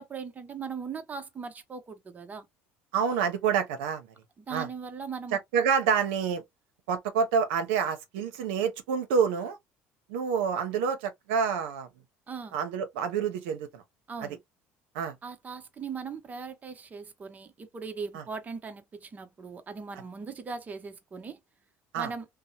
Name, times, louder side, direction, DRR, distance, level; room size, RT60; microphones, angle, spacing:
voice 1, 0.0-2.5 4.4-5.4 12.3-12.6 14.1-14.4 15.2-21.4 22.0-22.3, right 5 dB, 30° right, 0.7 m, -39 dB
voice 2, 2.9-4.1 4.5-4.7 5.3-6.4 6.9-9.6 10.1-11.9 12.5-13.8 14.2-14.4 14.9-15.1 18.1-18.2 21.9-22.1, right 6 dB, 90° right, 0.6 m, -28 dB
2.7 x 2.0 x 2.6 m
supercardioid pair, 90°, 6 cm